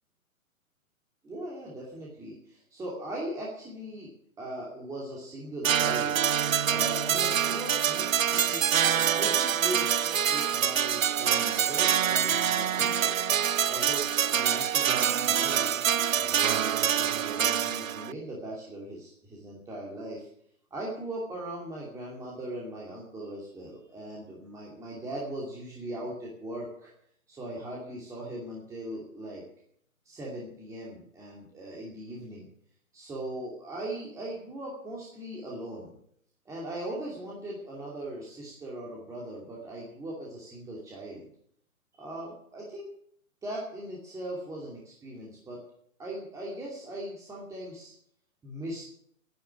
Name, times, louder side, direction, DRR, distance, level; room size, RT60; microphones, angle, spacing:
voice 1, 1.2-4.1 4.4-6.2 6.6-9.9 10.2-13.2 13.7-15.7 16.1-20.3 20.7-26.9 27.3-29.4 30.0-32.5 32.9-36.0 36.4-41.3 41.9-42.9 43.4-45.6 46.0-47.9 48.4-48.9, right 1 dB, 5° right, -4 dB, 2.6 m, -39 dB
sound 1, 5.6-18.1, right 9 dB, 70° right, 0.7 m, -26 dB
12.0 x 11.0 x 9.9 m, 0.67 s
hypercardioid pair, 145°, 42 cm